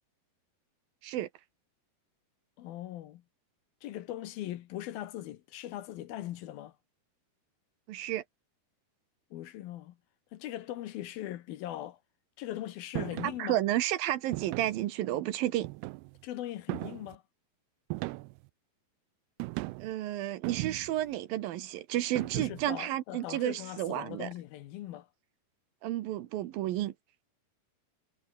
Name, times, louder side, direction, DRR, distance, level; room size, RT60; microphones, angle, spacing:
voice 1, 2.6-3.2 3.8-6.8 9.3-10.0 10.3-12.0 12.4-13.6 16.2-17.2 22.2-25.1, left 13 dB, 70° left, 2.8 m, -40 dB
voice 2, 7.9-8.2 13.2-15.7 19.8-24.3 25.8-26.9, right 14 dB, 70° right, 2.6 m, -32 dB
sound 1, 13.0-13.4 14.3-14.8 15.6-16.2 16.7-17.2 17.9-18.5 19.4-19.9 20.4-21.1 22.2-22.8, right 23 dB, 85° right, 2.6 m, -37 dB
omnidirectional pair, 4.6 m